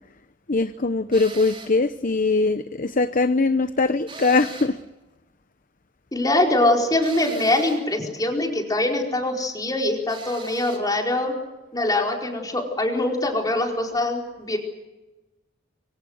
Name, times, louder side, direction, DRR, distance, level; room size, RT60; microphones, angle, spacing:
voice 1, 0.5-4.8, left 3 dB, 45° left, 11 dB, 0.8 m, -21 dB
sound 1, 1.1-1.8 4.1-4.9 7.0-7.9 10.1-10.9, right 3 dB, 30° right, 3.7 m, -40 dB
voice 2, 6.1-11.3 11.7-14.6, left 1 dB, 20° left, 1 dB, 4.6 m, -23 dB
26.0 x 24.5 x 6.5 m, 1.1 s
head